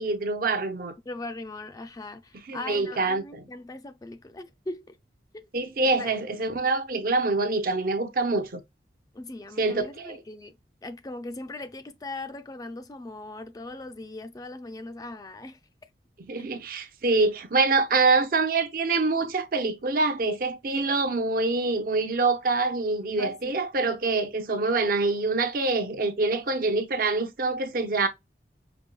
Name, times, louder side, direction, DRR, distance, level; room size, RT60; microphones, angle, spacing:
voice 1, 0.0-0.9 2.5-3.4 5.5-8.6 9.6-10.2 16.2-28.1, right 3 dB, 55° right, 0.7 m, -25 dB
voice 2, 1.1-5.0 5.3-5.5 6.0-6.2 9.1-10.6 10.8-15.6 16.4-16.5 23.2-23.5, left 2 dB, 20° left, 0.4 m, -39 dB
5.2 x 2.2 x 2.3 m
head